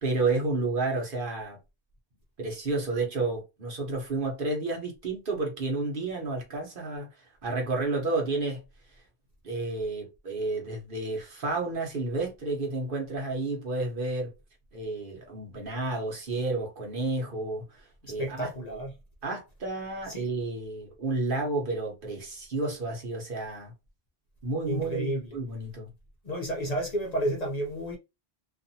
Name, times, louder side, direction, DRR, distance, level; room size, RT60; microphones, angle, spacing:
voice 1, 0.0-1.6 2.4-7.1 7.4-8.6 9.4-14.3 14.7-18.5 19.2-23.7 24.4-25.9, right 3 dB, 55° right, 1.1 m, -31 dB
voice 2, 18.0-18.9 20.1-20.2 24.7-25.3 26.2-28.0, right 1 dB, 45° left, 0.6 m, -31 dB
2.5 x 2.4 x 2.7 m
omnidirectional pair, 1.1 m